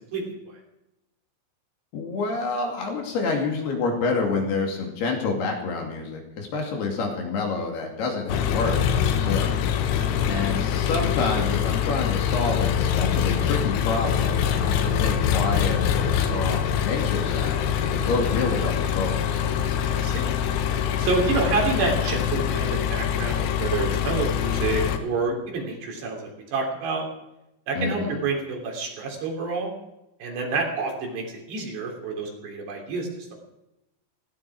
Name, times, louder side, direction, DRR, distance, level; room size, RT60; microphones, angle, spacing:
voice 1, 0.1-0.6 19.7-20.3 21.0-27.1 27.7-29.7 30.2-33.4, right 3 dB, 65° right, 1 dB, 5.4 m, -28 dB
voice 2, 1.9-9.5 10.3-17.6 17.9-19.4 27.7-28.2, left 3 dB, 60° left, 1 dB, 4.4 m, -28 dB
Engine, 8.3-25.0, left 9 dB, 90° left, 3.7 m, -24 dB
17.0 x 16.0 x 5.0 m, 0.89 s
omnidirectional pair, 5.4 m